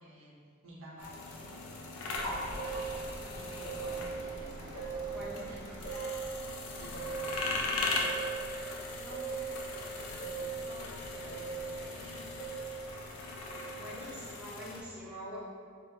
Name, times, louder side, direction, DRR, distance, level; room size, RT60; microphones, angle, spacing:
voice 1, 0.0-3.0 3.3-12.6, right 1 dB, 65° right, -4 dB, 0.5 m, -52 dB
sound 1, 1.0-14.8, left 3 dB, 85° left, 0.3 m, -40 dB
sound 2, 2.1-14.5, right 4 dB, 50° left, 0.6 m, -41 dB
voice 2, 5.1-5.6 13.8-15.4, equal, 5° right, -8 dB, 0.4 m, -44 dB
2.1 x 2.1 x 3.0 m, 2.2 s
head